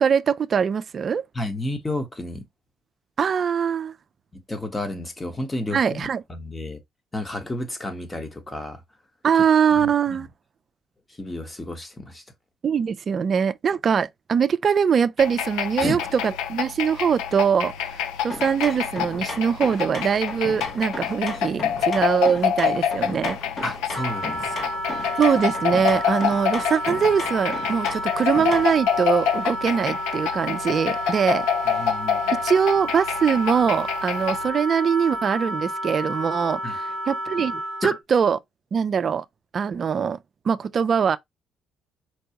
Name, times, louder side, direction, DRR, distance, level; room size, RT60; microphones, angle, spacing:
voice 1, 0.0-1.2 3.2-3.9 5.7-6.2 9.2-10.3 12.6-23.4 25.2-31.9 32.3-38.4 38.7-39.2 39.5-40.2 40.5-41.2, right 7 dB, 45° right, 0.4 m, -22 dB
voice 2, 1.3-2.4 4.3-6.8 7.1-8.8 9.7-9.9 11.2-12.2 15.8-16.0 23.6-24.7 31.7-32.4 36.6-36.7 37.8-37.9, left 1 dB, 20° left, 1.0 m, -31 dB
sound 1, 15.2-34.5, left 9 dB, 90° left, 0.4 m, -27 dB
sound 2, 18.3-28.8, left 2 dB, 45° left, 0.9 m, -36 dB
Wind instrument woodwind instrument, 23.9-38.0, equal, 65° left, 2.0 m, -31 dB
4.6 x 2.2 x 2.9 m
cardioid pair, 80°, 0 cm